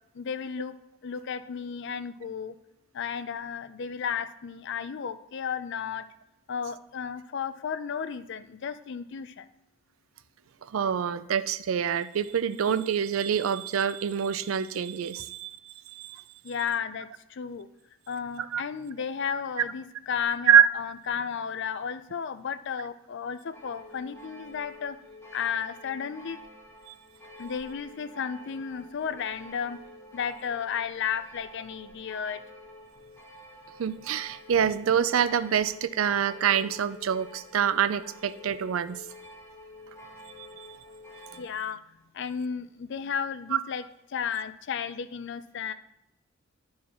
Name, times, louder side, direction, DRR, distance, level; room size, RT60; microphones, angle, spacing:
voice 1, 0.1-0.7 1.0-2.5 2.9-6.1 6.5-9.5 16.4-17.7 18.1-25.0 25.3-26.4 27.4-29.8 30.1-32.4 41.3-41.8 42.1-43.8 44.1-45.7, left 7 dB, 60° left, 12 dB, 0.5 m, -33 dB
voice 2, 10.7-16.2 18.4-18.6 20.5-20.7 26.9-27.0 33.8-39.0 40.4-40.7 43.5-43.6, right 8 dB, 80° right, 14 dB, 0.4 m, -26 dB
sound 1, 23.5-41.5, equal, 15° left, 1.5 m, -48 dB
11.0 x 4.8 x 4.2 m, 0.87 s
head